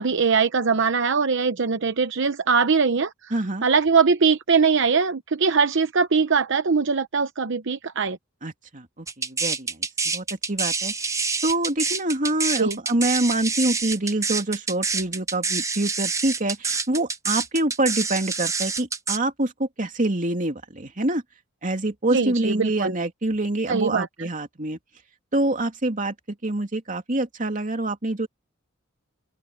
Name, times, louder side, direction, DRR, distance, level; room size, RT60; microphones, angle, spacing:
voice 1, 0.0-3.3 3.6-8.2 12.6-12.8 22.1-22.9 23.7-24.3, right 5 dB, 65° right, 0.8 m, -21 dB
voice 2, 3.3-3.7 8.4-11.1 11.4-21.2 21.6-24.8 25.3-26.1 26.4-28.3, right 2 dB, 40° right, 2.6 m, -26 dB
sound 1, 9.1-19.2, right 4 dB, 15° right, 0.8 m, -27 dB
open air
head